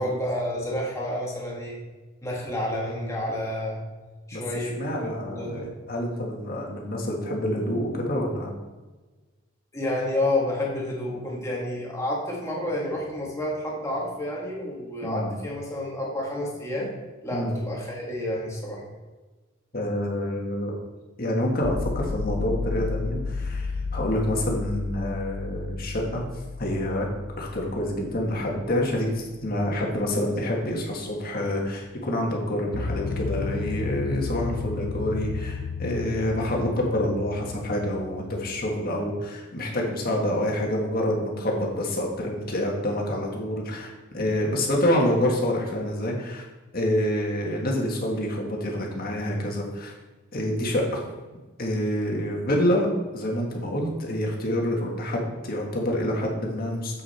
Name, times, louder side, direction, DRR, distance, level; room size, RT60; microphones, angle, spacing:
voice 1, 0.0-1.8 2.2-3.8 4.3-5.7 9.7-16.9 17.2-18.8, left 1 dB, 15° left, -3 dB, 1.8 m, -29 dB
voice 2, 4.3-8.5 15.0-15.3 17.3-17.5 19.7-20.7 21.2-26.2 26.6-27.1 27.4-46.4 46.7-49.9 50.3-51.0 51.6-52.9 53.1-57.0, left 1 dB, 45° left, -1 dB, 1.7 m, -27 dB
sound 1, 21.6-29.4 32.7-38.8, left 4 dB, 60° left, 0.4 m, -33 dB
7.8 x 6.5 x 4.3 m, 1.2 s
head